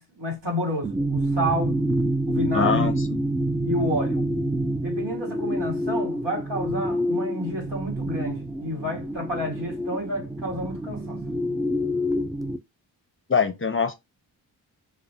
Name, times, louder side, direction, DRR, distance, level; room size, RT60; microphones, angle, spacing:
voice 1, 0.0-1.8 2.3-3.0 3.6-4.2 4.8-11.2, equal, 60° right, 1.7 m, -30 dB
sound 1, 0.8-12.6, equal, 10° right, 0.4 m, -27 dB
voice 2, 2.5-3.2 13.3-13.9, left 6 dB, 25° left, 0.7 m, -23 dB
2.5 x 2.3 x 3.2 m
cardioid pair, 40°, 48 cm